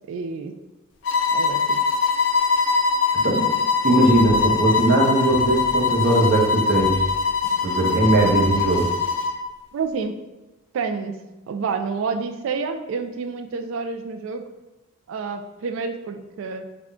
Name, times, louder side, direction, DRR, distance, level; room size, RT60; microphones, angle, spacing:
voice 1, 0.1-0.6 1.3-1.8 3.2-3.3 9.7-10.2 10.7-14.4 15.1-16.6, right 5 dB, 75° right, 7 dB, 0.3 m, -29 dB
sound 1, 1.0-9.4, left 5 dB, 60° left, 0.4 m, -22 dB
voice 2, 3.8-7.0 7.6-8.8, right 2 dB, 45° right, -3 dB, 0.8 m, -19 dB
sound 2, 4.1-6.5 6.8-9.1, equal, ahead, 1.0 m, -38 dB
3.6 x 2.2 x 3.7 m, 1.0 s
head